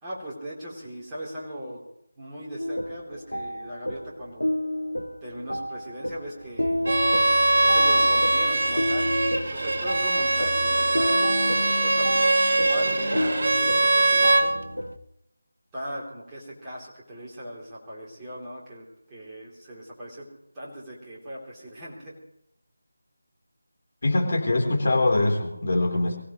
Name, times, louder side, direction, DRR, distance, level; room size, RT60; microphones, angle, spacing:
voice 1, 0.0-1.8 2.2-4.6 5.2-6.8 7.6-9.1 9.5-11.3 11.6-12.1 12.6-14.6 15.7-20.3 20.5-22.2, equal, 10° right, -7 dB, 3.3 m, -38 dB
sound 1, 2.6-15.0, equal, 85° left, 1.0 m, -31 dB
Bowed string instrument, 6.8-14.5, right 2 dB, 50° right, 1.2 m, -22 dB
voice 2, 24.0-26.2, left 2 dB, 50° left, 0 dB, 3.7 m, -23 dB
24.5 x 16.0 x 3.2 m, 0.77 s
figure-of-eight pair, 160°, 0 cm